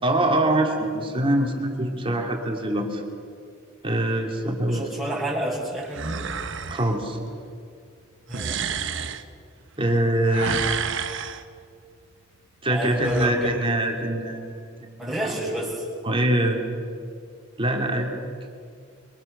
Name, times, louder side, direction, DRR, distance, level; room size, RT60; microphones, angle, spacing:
voice 1, 0.0-3.0 3.8-4.9 6.7-7.2 9.8-10.6 12.6-15.1 16.0-16.6 17.6-18.1, right 1 dB, 25° right, 1 dB, 3.0 m, -24 dB
voice 2, 4.4-6.2 8.3-8.6 12.7-13.6 15.0-15.8, right 1 dB, ahead, -10 dB, 5.9 m, -29 dB
sound 1, 5.9-6.9 8.3-9.2 10.3-11.4 12.9-13.2, right 6 dB, 65° right, 1.3 m, -30 dB
29.0 x 23.0 x 7.0 m, 2.3 s
head